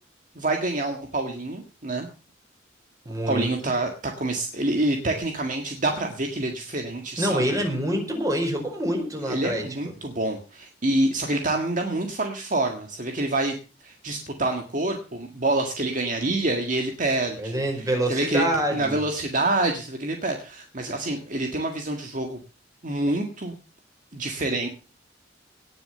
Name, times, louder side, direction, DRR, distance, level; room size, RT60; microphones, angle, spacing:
voice 1, 0.4-2.1 3.3-7.4 9.3-13.5 13.8-18.5 18.7-22.4 22.8-23.6 24.1-24.7, right 2 dB, 45° right, 4 dB, 1.8 m, -27 dB
voice 2, 3.0-3.5 7.2-9.6 17.4-19.0, right 1 dB, 20° right, 2 dB, 4.8 m, -26 dB
18.5 x 6.9 x 6.7 m, 0.36 s
head